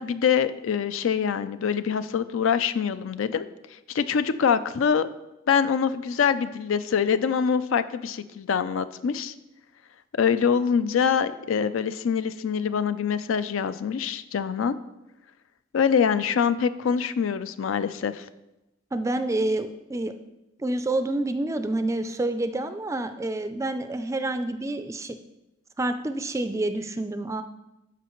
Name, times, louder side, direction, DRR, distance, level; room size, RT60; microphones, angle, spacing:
voice 1, 0.0-3.5 3.9-5.1 5.5-9.3 10.2-14.8 15.7-18.3, left 7 dB, 80° left, 13 dB, 0.4 m, -24 dB
voice 2, 18.9-20.1 20.6-25.2 25.8-27.4, right 2 dB, 15° right, 9 dB, 0.3 m, -28 dB
12.5 x 5.0 x 3.0 m, 0.95 s
head